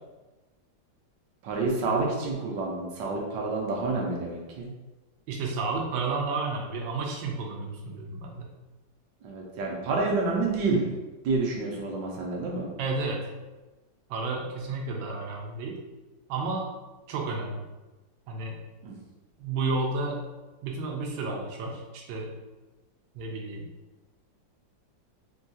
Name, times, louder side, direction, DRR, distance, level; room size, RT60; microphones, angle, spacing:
voice 1, 1.4-4.7 9.2-10.8 11.2-12.7 18.8-18.9, right 3 dB, 75° right, -1 dB, 1.2 m, -28 dB
voice 2, 5.3-8.5 12.8-13.2 14.1-15.8 16.3-16.7 17.1-17.6 18.3-18.6 19.4-20.2 20.6-22.3 23.1-23.7, right 3 dB, 90° right, 0 dB, 1.3 m, -31 dB
3.7 x 2.3 x 2.6 m, 1.1 s
omnidirectional pair, 2.0 m